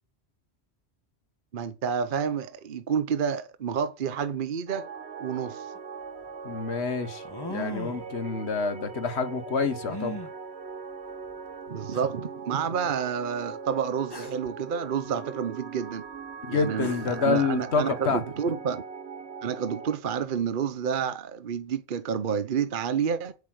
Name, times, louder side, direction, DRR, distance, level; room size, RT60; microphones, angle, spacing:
voice 1, 1.5-4.9 5.2-5.7 11.7-16.0 16.5-18.8 19.4-23.3, right 7 dB, 55° right, 0.9 m, -29 dB
sound 1, 4.7-20.0, right 5 dB, 75° right, 1.3 m, -41 dB
sound 2, 5.8-5.9 7.2-8.1 9.9-10.3 11.3-11.4 11.9-12.0 14.1-14.5 16.4-16.5 16.8-17.3, left 1 dB, 20° left, 1.4 m, -37 dB
voice 2, 6.4-10.2 16.4-18.2, left 5 dB, 85° left, 1.6 m, -28 dB
8.5 x 8.4 x 7.9 m
omnidirectional pair, 1.1 m